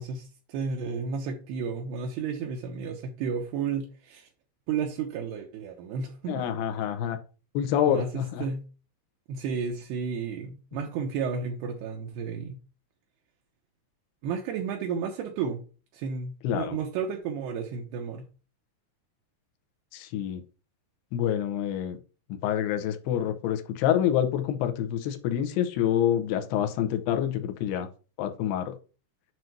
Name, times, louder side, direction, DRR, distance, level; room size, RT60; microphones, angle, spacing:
voice 1, 0.0-4.3 4.7-6.4 7.9-8.6 9.3-12.6 14.2-15.6 15.9-18.3, right 6 dB, 80° right, 2.7 m, -32 dB
voice 2, 6.3-7.2 7.5-8.5 16.4-16.8 19.9-20.4 21.1-22.0 22.3-27.9 28.2-28.8, left 10 dB, 80° left, 2.6 m, -27 dB
7.7 x 2.6 x 5.8 m
omnidirectional pair, 5.0 m